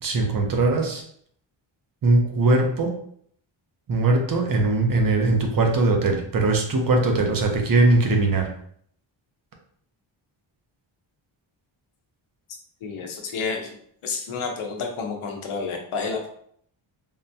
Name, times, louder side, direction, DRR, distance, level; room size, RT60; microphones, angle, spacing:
voice 1, 0.0-1.0 2.0-2.9 3.9-8.5, right 2 dB, 45° right, 2 dB, 0.7 m, -20 dB
voice 2, 12.5-13.8 14.0-16.3, left 4 dB, 90° left, 2 dB, 0.7 m, -30 dB
3.6 x 2.2 x 2.7 m, 0.64 s
wide cardioid pair, 120°, 48 cm